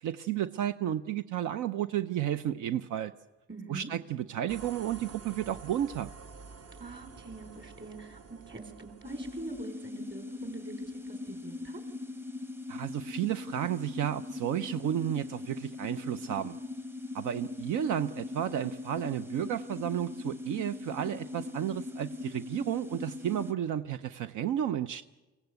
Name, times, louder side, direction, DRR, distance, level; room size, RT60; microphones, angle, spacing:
voice 1, 0.0-3.1 3.7-6.1 12.7-16.6 17.1-25.0, right 11 dB, 80° right, 12 dB, 0.6 m, -32 dB
voice 2, 3.5-3.9 6.8-11.8, right 3 dB, 35° right, 7 dB, 4.3 m, -44 dB
sound 1, 4.5-9.6, right 4 dB, 55° right, 1.4 m, -49 dB
sound 2, 9.0-23.5, left 3 dB, 5° right, 0.7 m, -40 dB
22.5 x 17.5 x 8.0 m, 1.1 s
cardioid pair, 90°, 30 cm